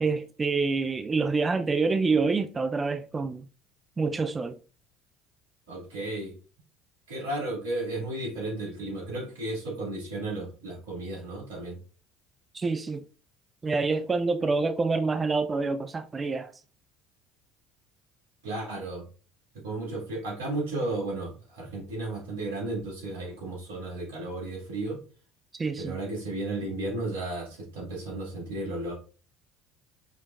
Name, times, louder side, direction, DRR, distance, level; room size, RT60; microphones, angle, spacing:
voice 1, 0.0-3.5 4.0-4.6 12.5-13.0 13.6-16.5 25.5-26.0, right 4 dB, 25° right, 0.4 m, -27 dB
voice 2, 5.7-6.3 7.1-11.8 18.4-19.1 19.6-25.0 25.8-28.9, right 2 dB, 85° right, 2.1 m, -34 dB
5.1 x 3.3 x 2.5 m
hypercardioid pair, 65°, 0 cm